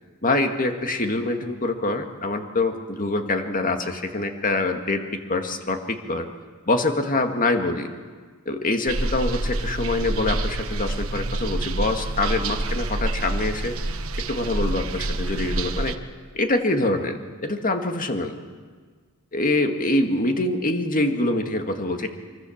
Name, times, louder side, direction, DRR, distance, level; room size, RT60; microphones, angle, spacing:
voice 1, 0.2-6.3 6.7-7.9 8.5-13.7 14.3-16.0 16.3-18.3 19.3-22.1, left 2 dB, 40° left, 5 dB, 2.1 m, -25 dB
sound 1, 8.9-16.0, right 2 dB, 70° right, 1.3 m, -27 dB
24.5 x 24.5 x 7.3 m, 1.5 s
head